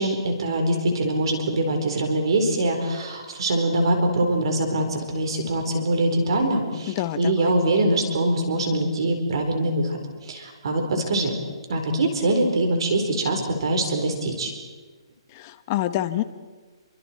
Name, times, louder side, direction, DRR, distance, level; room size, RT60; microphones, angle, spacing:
voice 1, 0.0-11.3 11.7-14.5, right 1 dB, 60° right, 4 dB, 4.6 m, -23 dB
voice 2, 6.9-7.5 15.3-16.2, left 14 dB, 30° left, 11 dB, 1.1 m, -27 dB
28.5 x 24.5 x 4.6 m, 1.3 s
hypercardioid pair, 160°, 3 cm